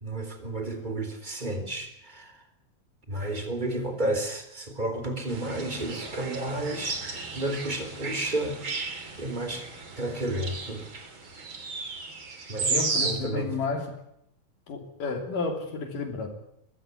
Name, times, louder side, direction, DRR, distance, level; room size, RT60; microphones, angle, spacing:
voice 1, 0.0-2.4 3.1-9.7 10.0-10.9 12.5-13.5, right 1 dB, 15° right, 7 dB, 3.6 m, -32 dB
sound 1, 5.3-13.1, right 4 dB, 35° right, 3.6 m, -34 dB
voice 2, 12.7-13.9 14.7-16.3, left 4 dB, 70° left, 5 dB, 4.5 m, -31 dB
22.5 x 15.0 x 9.8 m, 0.78 s
omnidirectional pair, 4.0 m